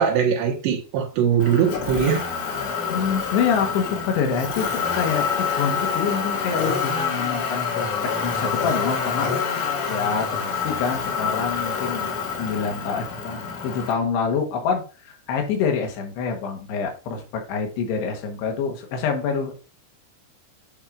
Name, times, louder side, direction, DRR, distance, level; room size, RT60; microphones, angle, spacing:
voice 1, 0.0-2.2, right 8 dB, 90° right, 3.5 m, -21 dB
Motor vehicle (road), 1.4-13.9, left 6 dB, 60° left, 2.4 m, -27 dB
voice 2, 2.9-9.6 9.9-19.6, left 6 dB, 75° left, 3.4 m, -26 dB
10.5 x 4.5 x 2.5 m
omnidirectional pair, 4.9 m